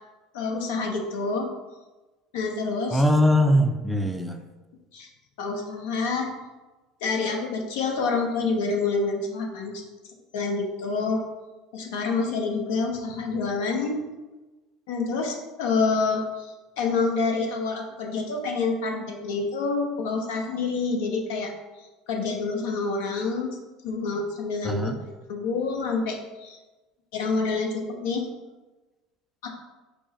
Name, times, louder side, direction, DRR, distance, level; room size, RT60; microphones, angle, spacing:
voice 1, 0.3-1.5 2.3-3.0 4.9-5.1 5.4-6.3 7.0-9.8 10.3-11.2 11.7-14.0 14.9-21.5 21.8-23.6 23.8-24.9 25.3-26.6 27.1-28.3 29.4-29.5, left 4 dB, 70° left, 2 dB, 0.8 m, -27 dB
voice 2, 2.9-4.4 24.6-25.0, left 1 dB, ahead, 5 dB, 0.4 m, -21 dB
5.9 x 2.0 x 3.9 m, 1.2 s
hypercardioid pair, 70°, 0 cm